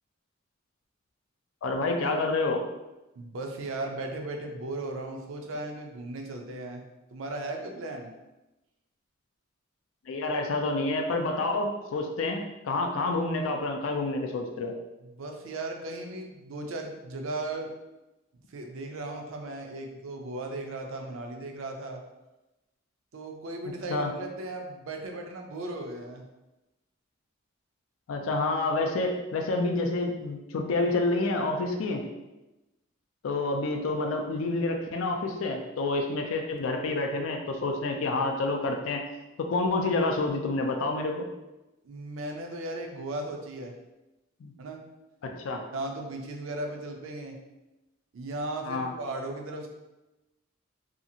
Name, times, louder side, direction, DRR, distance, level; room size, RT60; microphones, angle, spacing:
voice 1, 1.6-2.6 10.1-14.7 23.9-24.1 28.1-32.0 33.2-39.0 39.4-41.3 44.4-44.5 45.2-45.6 48.6-48.9, left 2 dB, 80° left, 3 dB, 0.4 m, -28 dB
voice 2, 3.2-6.8 7.1-8.1 15.0-17.7 18.5-22.0 23.1-26.3 41.8-43.7 44.6-44.8 45.7-47.4 48.1-49.7, right 2 dB, 80° right, 2 dB, 0.5 m, -36 dB
2.8 x 2.4 x 2.7 m, 1.0 s
head